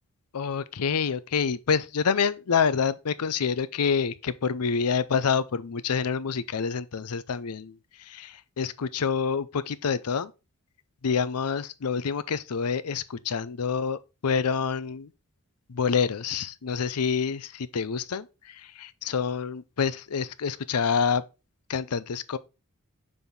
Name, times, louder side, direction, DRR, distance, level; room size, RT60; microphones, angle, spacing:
voice 1, 0.3-7.8 8.1-10.3 11.0-15.1 15.7-21.2 21.7-22.4, left 6 dB, 85° left, 0.6 m, -27 dB
6.9 x 3.5 x 3.9 m
head